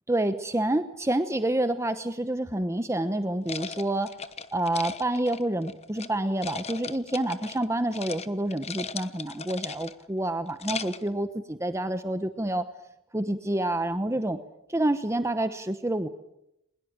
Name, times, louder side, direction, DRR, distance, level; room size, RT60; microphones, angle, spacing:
voice 1, 0.1-4.1 4.5-12.7 13.1-14.4 14.7-16.1, right 1 dB, 15° right, 10 dB, 1.0 m, -28 dB
sound 1, 3.5-6.1 6.4-7.7 7.9-8.3 8.5-10.1 10.5-11.1, left 5 dB, 30° left, 1.0 m, -37 dB
22.0 x 21.5 x 8.7 m, 0.83 s
head